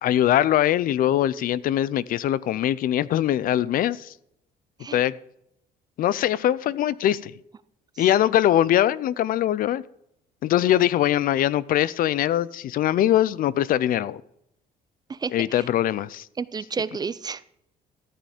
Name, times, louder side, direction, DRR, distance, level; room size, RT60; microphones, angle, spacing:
voice 1, 0.0-4.1 4.9-5.1 6.0-7.3 8.0-9.8 10.4-14.2 15.3-16.3, left 12 dB, 55° left, 0.4 m, -22 dB
voice 2, 15.1-15.7 16.4-17.4, right 5 dB, 25° right, 0.4 m, -31 dB
13.5 x 7.6 x 5.1 m
cardioid pair, 110°, 17 cm